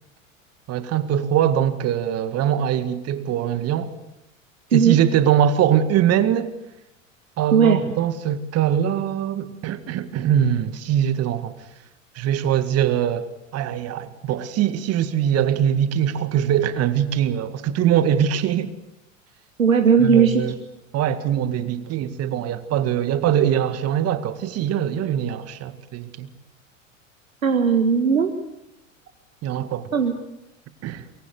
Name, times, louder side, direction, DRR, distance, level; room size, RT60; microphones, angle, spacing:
voice 1, 0.7-3.9 4.7-6.5 7.4-11.5 12.2-13.3 13.5-18.7 20.0-20.6 20.9-26.3 29.4-29.9 30.8-31.0, right 10 dB, 40° right, 2.0 m, -22 dB
voice 2, 19.6-20.4 27.4-28.3 29.9-30.1, right 6 dB, 80° right, 1.8 m, -17 dB
23.5 x 23.0 x 8.1 m
figure-of-eight pair, 85°, 40 cm